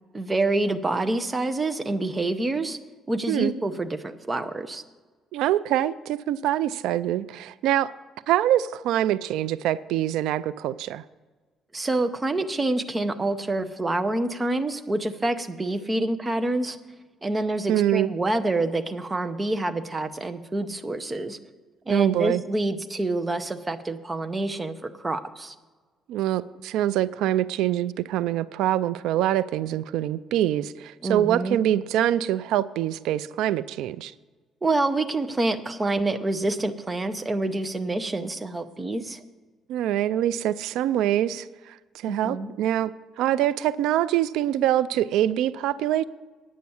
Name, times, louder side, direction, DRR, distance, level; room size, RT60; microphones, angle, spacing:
voice 1, 0.1-2.8 3.1-4.8 11.7-16.8 17.2-21.4 21.9-25.5 31.0-31.6 34.6-39.2 42.1-42.5, right 2 dB, 15° right, 8 dB, 0.6 m, -27 dB
voice 2, 5.3-7.9 8.3-11.0 17.7-18.1 21.9-22.4 26.1-34.1 39.7-42.9 43.2-46.0, right 12 dB, 85° right, 16 dB, 0.3 m, -24 dB
9.3 x 8.6 x 7.0 m, 1.4 s
cardioid pair, 160°, 0 cm